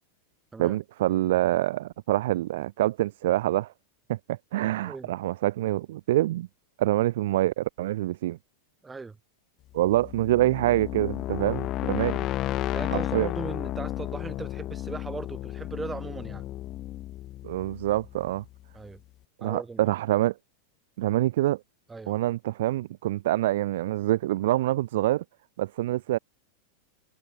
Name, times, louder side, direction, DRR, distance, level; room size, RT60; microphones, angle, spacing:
voice 1, 0.6-3.7 4.1-6.5 6.8-8.4 9.7-12.2 12.9-13.3 17.4-18.4 19.4-20.3 21.0-21.6 22.1-25.2 25.6-26.2, right 15 dB, 55° right, 0.8 m, -26 dB
voice 2, 8.8-9.2 12.7-16.5 18.7-19.0 19.4-19.9 21.9-22.2, right 4 dB, 10° right, 2.1 m, -38 dB
sound 1, 9.8-18.6, left 14 dB, 35° left, 0.5 m, -33 dB
figure-of-eight pair, 90°, 0 cm